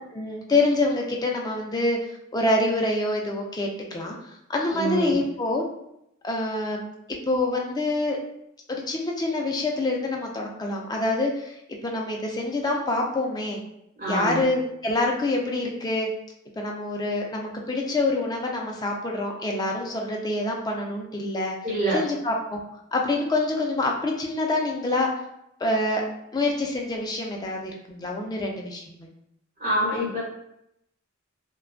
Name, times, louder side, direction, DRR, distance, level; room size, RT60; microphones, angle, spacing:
voice 1, 0.1-2.0 2.3-4.2 4.5-5.6 6.2-6.9 7.3-8.2 8.7-11.5 11.8-13.6 14.1-16.1 16.6-21.6 21.9-22.6 22.9-25.1 25.6-26.0 26.3-29.1, left 2 dB, 20° left, 0 dB, 0.3 m, -26 dB
voice 2, 4.7-5.1 14.0-14.4 21.6-22.0 29.6-30.2, right 1 dB, 40° right, -7 dB, 1.1 m, -25 dB
2.4 x 2.2 x 2.4 m, 0.80 s
head